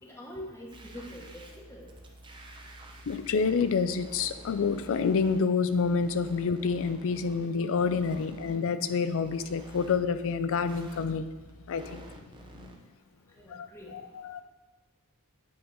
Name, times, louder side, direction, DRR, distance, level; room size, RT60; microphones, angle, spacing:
voice 1, 0.0-1.9 13.4-14.0, left 1 dB, 10° left, -3 dB, 0.9 m, -44 dB
sound 1, 0.7-5.4 5.7-8.6 8.8-8.9 9.2-12.7, right 1 dB, 20° right, 0.7 m, -49 dB
voice 2, 3.1-11.3 11.6-12.0 12.6-12.8 13.5-14.4, left 5 dB, 65° left, 12 dB, 0.4 m, -28 dB
8.6 x 3.8 x 5.2 m, 1.2 s
head